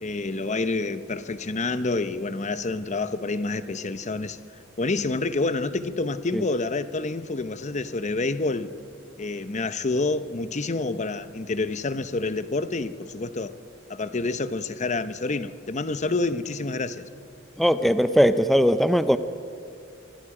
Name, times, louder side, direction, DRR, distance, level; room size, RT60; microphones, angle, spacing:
voice 1, 0.0-4.4 4.8-8.7 9.2-13.6 13.9-17.1, left 3 dB, 35° left, 0.8 m, -28 dB
voice 2, 17.6-19.2, equal, ahead, 0.6 m, -19 dB
26.0 x 24.5 x 4.9 m
head